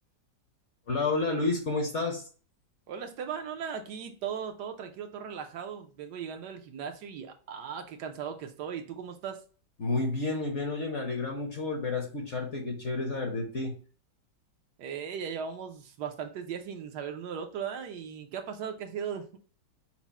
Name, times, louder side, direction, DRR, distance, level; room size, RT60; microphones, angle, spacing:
voice 1, 0.9-2.2 9.8-13.8, left 3 dB, 50° left, 0.9 m, -30 dB
voice 2, 2.9-9.4 14.8-19.4, right 7 dB, 75° right, 1.2 m, -38 dB
5.9 x 2.0 x 4.1 m
omnidirectional pair, 1.9 m